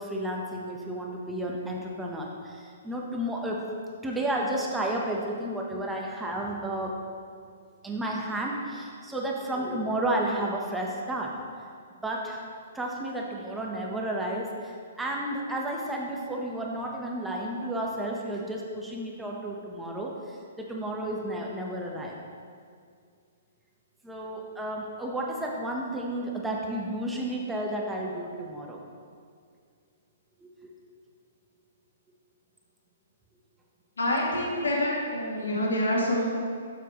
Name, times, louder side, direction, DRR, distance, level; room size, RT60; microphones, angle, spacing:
voice 1, 0.0-3.7 4.0-7.0 7.8-11.3 12.0-12.5 12.7-22.2 24.0-28.8 30.4-30.5, right 1 dB, 5° right, -1 dB, 1.1 m, -32 dB
voice 2, 34.0-36.3, left 1 dB, 90° left, -3 dB, 2.3 m, -26 dB
11.5 x 7.2 x 3.1 m, 2.2 s
hypercardioid pair, 135°, 0 cm